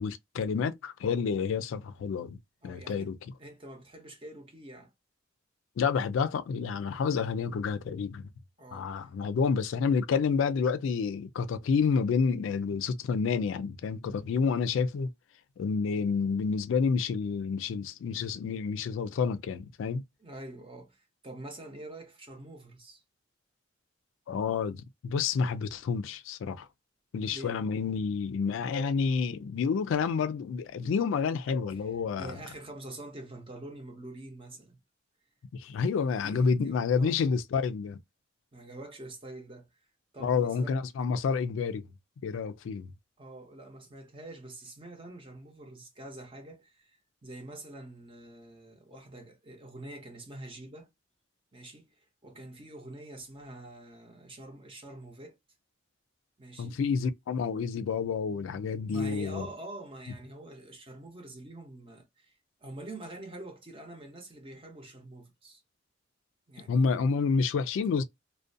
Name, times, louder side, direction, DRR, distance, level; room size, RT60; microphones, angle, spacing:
voice 1, 0.0-2.4 2.6-3.2 5.8-8.3 8.7-15.1 15.6-20.0 24.3-26.7 27.1-32.4 35.5-38.0 40.2-41.9 42.2-42.9 56.6-59.5 66.7-68.0, left 5 dB, 75° left, 0.3 m, -29 dB
voice 2, 2.6-3.1 3.4-4.9 8.6-9.1 20.2-23.0 27.3-27.6 32.2-34.8 36.2-37.3 38.5-39.7 40.1-40.9 43.2-50.9 51.5-55.4 56.4-56.8 58.9-65.6 66.5-66.8, right 1 dB, 30° right, 0.6 m, -46 dB
2.4 x 2.1 x 2.6 m
head